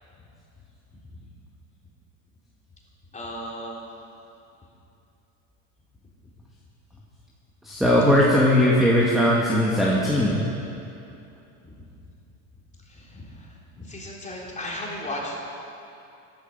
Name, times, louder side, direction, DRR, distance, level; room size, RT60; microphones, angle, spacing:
voice 1, 3.1-3.9 8.1-8.2 11.6-11.8 12.9-15.4, left 1 dB, 15° left, -3 dB, 3.7 m, -36 dB
voice 2, 7.6-10.4, left 1 dB, ahead, -5 dB, 1.9 m, -19 dB
14.5 x 11.5 x 5.4 m, 2.7 s
hypercardioid pair, 90°, 41 cm